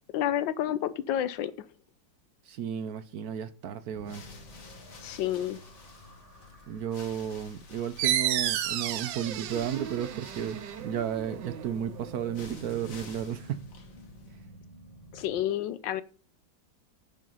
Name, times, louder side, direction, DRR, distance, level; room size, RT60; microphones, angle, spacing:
voice 1, 0.1-1.7 5.0-5.6 15.1-16.0, left 11 dB, 80° left, 1.4 m, -30 dB
voice 2, 2.5-4.2 6.7-13.6, right 9 dB, 65° right, 1.0 m, -33 dB
sound 1, 3.9-14.6, left 5 dB, 45° left, 1.7 m, -52 dB
sound 2, 3.9-15.4, right 1 dB, 25° right, 5.6 m, -52 dB
sound 3, 8.0-13.3, right 11 dB, 80° right, 1.4 m, -33 dB
9.8 x 5.7 x 5.4 m
omnidirectional pair, 2.0 m